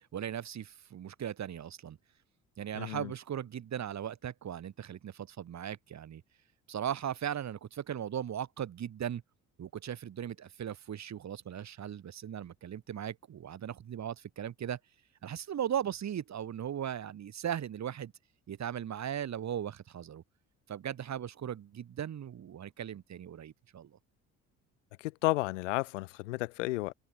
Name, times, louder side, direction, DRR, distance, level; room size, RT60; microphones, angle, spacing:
voice 1, 0.0-2.0 2.6-6.2 6.7-9.2 9.6-14.8 15.2-18.1 18.5-20.2 20.7-24.0, right 9 dB, 50° right, 2.4 m, -38 dB
voice 2, 2.7-3.1 25.0-26.9, left 21 dB, 90° left, 0.6 m, -32 dB
open air
hypercardioid pair, 60°, 36 cm